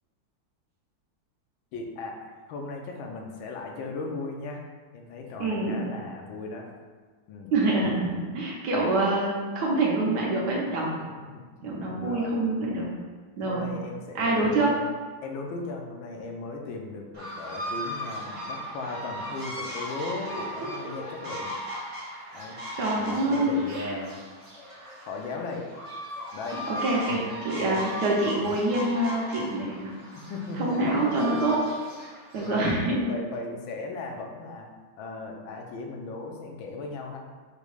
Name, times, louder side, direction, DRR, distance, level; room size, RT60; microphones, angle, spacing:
voice 1, 1.7-4.6 4.9-6.7 7.3-7.5 11.0-11.4 11.9-12.3 13.5-14.8 15.2-21.5 22.3-22.6 23.0-24.2 25.0-25.7 26.3-26.6 27.6-27.9 30.3-31.4 32.0-32.6 33.1-34.7 35.0-37.2, left 3 dB, 80° left, 1 dB, 1.4 m, -37 dB
voice 2, 5.4-5.8 7.5-10.9 11.6-12.9 13.4-13.7 14.1-14.7 20.6-20.9 22.8-24.0 26.7-29.9 30.6-31.6 32.3-33.0, right 2 dB, 65° right, -3 dB, 1.3 m, -26 dB
sound 1, 17.1-32.7, equal, 30° right, 0.5 m, -37 dB
5.1 x 2.2 x 4.8 m, 1.5 s
omnidirectional pair, 2.2 m